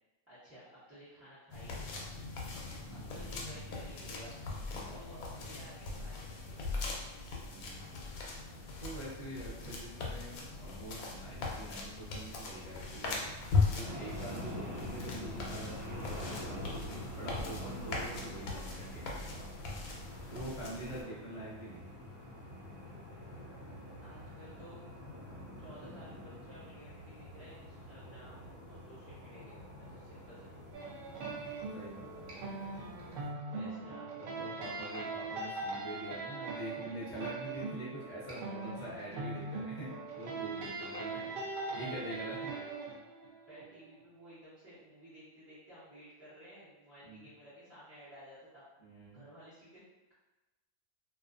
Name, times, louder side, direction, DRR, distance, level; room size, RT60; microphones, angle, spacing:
voice 1, 0.3-2.1 2.9-4.4 4.8-6.6 24.0-24.9 25.6-30.9 33.5-34.1 41.7-42.1 42.5-42.7 43.5-48.6 49.1-49.8, right 1 dB, 15° right, -14 dB, 0.7 m, -54 dB
sound 1, 1.5-21.0, left 4 dB, 85° left, 1.1 m, -39 dB
voice 2, 2.9-3.3 4.7-5.0 5.4-5.5 7.5-13.4 13.7-16.8 17.2-19.8 20.3-21.9 31.1-32.2 33.2-41.2 41.7-42.5 47.0-47.3 48.8-49.2, right 1 dB, 35° left, -7 dB, 0.7 m, -45 dB
sound 2, 13.8-33.3, equal, 55° right, 1.2 m, -46 dB
sound 3, 30.7-43.9, right 3 dB, 75° right, 0.5 m, -41 dB
2.4 x 2.3 x 2.4 m, 1.1 s
omnidirectional pair, 1.5 m